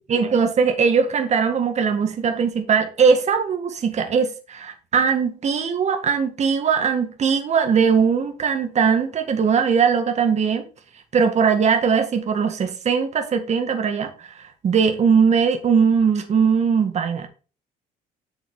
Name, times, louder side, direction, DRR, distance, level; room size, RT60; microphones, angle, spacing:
voice 1, 0.0-10.6 11.1-17.3, right 6 dB, 40° right, 1.8 m, -20 dB
8.3 x 6.3 x 3.7 m
cardioid pair, 110°, 17 cm